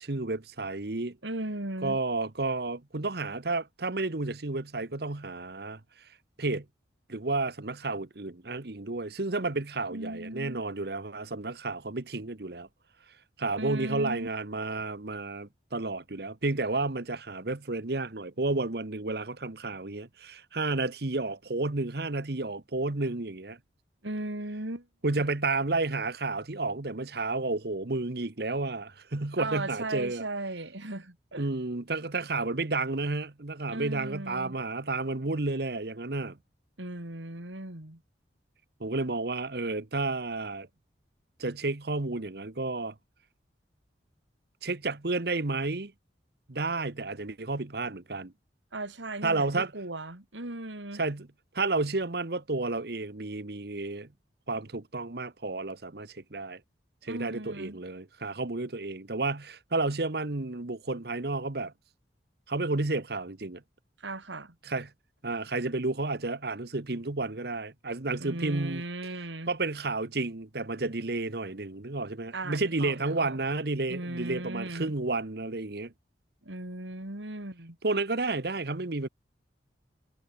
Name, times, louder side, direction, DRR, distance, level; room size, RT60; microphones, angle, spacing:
voice 1, 0.0-1.2 1.8-5.8 6.4-6.6 7.1-12.7 13.4-23.6 25.0-30.2 31.4-36.4 38.8-40.7 41.4-42.9 44.6-45.9 46.5-48.3 49.2-49.7 50.9-51.3 51.5-54.1 54.5-56.6 57.0-61.7 62.5-63.6 64.6-64.9 65.2-68.8 69.5-75.9 77.8-79.1, right 3 dB, 60° right, 1.2 m, -31 dB
voice 2, 1.2-2.0 9.9-10.6 13.6-14.3 24.0-24.9 25.2-25.3 29.4-31.5 33.7-34.6 36.8-38.0 48.7-51.0 57.1-57.8 64.0-64.5 68.2-69.5 72.3-73.4 73.9-74.9 76.4-77.8, right 2 dB, 85° right, 3.2 m, -37 dB
head